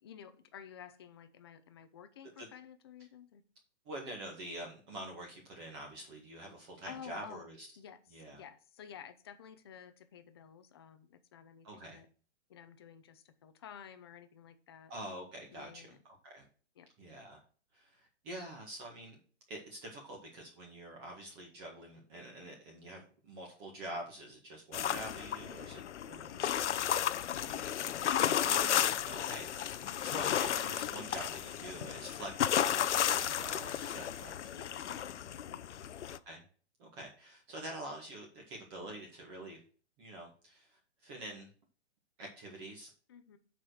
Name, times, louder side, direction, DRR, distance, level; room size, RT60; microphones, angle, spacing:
voice 1, 0.0-3.4 6.9-7.5 7.8-12.1 12.5-14.9 15.5-16.0 16.8-16.9 26.3-28.0 34.5-35.8 43.1-43.4, left 8 dB, 20° left, 0.6 m, -52 dB
voice 2, 3.9-7.7 8.1-8.4 11.6-12.0 14.9-15.9 16.2-16.4 17.0-17.4 17.7-19.2 19.5-26.4 28.4-34.5 36.3-36.4 36.8-39.6 40.0-41.5 42.2-42.9, right 1 dB, 20° right, 1.8 m, -46 dB
sound 1, 24.7-36.2, left 10 dB, 75° left, 0.7 m, -33 dB
7.3 x 5.2 x 6.3 m
hypercardioid pair, 170°, 35 cm